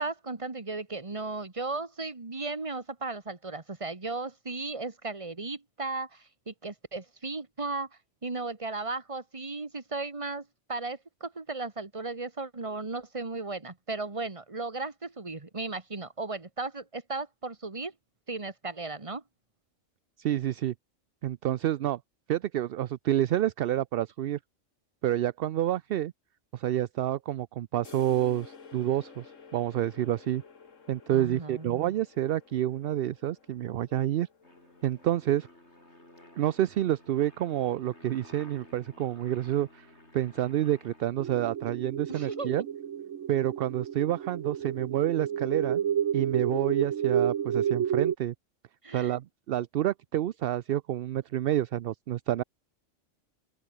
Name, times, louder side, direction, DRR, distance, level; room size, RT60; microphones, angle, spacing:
voice 1, 0.0-7.9 8.2-17.9 18.3-19.2 31.1-31.9 42.1-42.5 48.8-49.1, right 3 dB, 25° right, 1.7 m, -36 dB
voice 2, 20.2-20.7 21.2-22.0 22.3-24.4 25.0-26.1 26.5-30.4 30.9-34.3 34.8-35.5 36.4-42.6 43.3-45.8 46.1-48.3 48.9-52.4, right 12 dB, 60° right, 0.6 m, -28 dB
sound 1, 27.8-35.4, left 5 dB, 80° left, 2.2 m, -52 dB
Aircraft, 34.4-41.1, left 1 dB, 60° left, 8.5 m, -54 dB
sound 2, 41.2-48.1, right 9 dB, 85° right, 1.4 m, -30 dB
open air
omnidirectional pair, 1.3 m